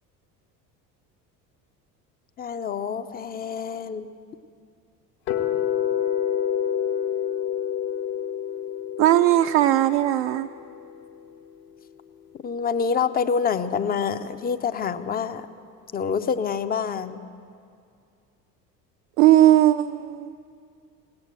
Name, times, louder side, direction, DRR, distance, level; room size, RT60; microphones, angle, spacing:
voice 1, 2.4-4.1 12.4-15.5 15.9-17.2, left 6 dB, 20° left, 11 dB, 0.5 m, -26 dB
sound 1, 5.3-11.3, left 9 dB, 65° left, 1.2 m, -28 dB
voice 2, 9.0-10.5 19.2-20.3, right 13 dB, 60° right, 7 dB, 0.5 m, -18 dB
17.0 x 8.3 x 7.8 m, 2.4 s
figure-of-eight pair, 65°, 48 cm